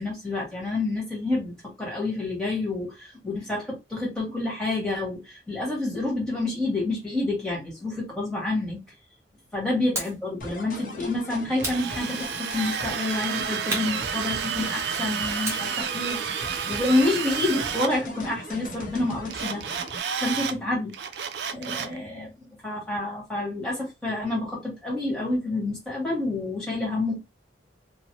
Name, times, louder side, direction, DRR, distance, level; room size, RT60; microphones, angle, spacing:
voice 1, 0.0-8.8 9.5-19.6 20.2-20.9 21.5-22.3 22.6-27.2, left 2 dB, 5° left, 1.4 m, -28 dB
sound 1, 9.9-10.3 11.6-12.5 13.7-14.8 15.4-17.7, right 1 dB, 15° right, 0.8 m, -36 dB
sound 2, 10.4-20.0, equal, 45° left, 0.7 m, -39 dB
Drill, 11.6-17.9 19.3-20.6 20.9-22.0, right 7 dB, 65° right, 0.3 m, -30 dB
3.0 x 2.1 x 3.0 m
head